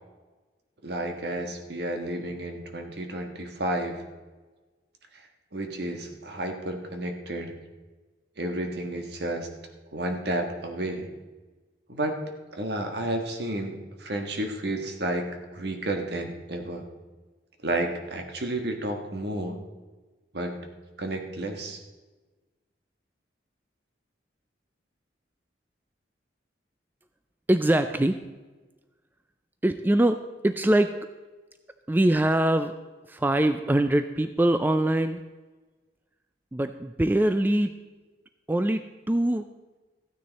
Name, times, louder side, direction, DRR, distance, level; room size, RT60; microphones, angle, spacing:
voice 1, 0.8-4.0 5.5-7.6 8.4-9.5 9.9-11.1 11.9-12.2 12.5-16.8 17.6-19.6 20.3-20.6 21.0-21.8, right 1 dB, 65° right, 4 dB, 1.5 m, -31 dB
voice 2, 27.5-28.2 29.6-31.0 31.9-32.8 33.1-35.2 36.5-37.8 38.5-39.5, right 1 dB, 10° right, 9 dB, 0.3 m, -23 dB
14.5 x 9.5 x 4.1 m, 1.3 s
head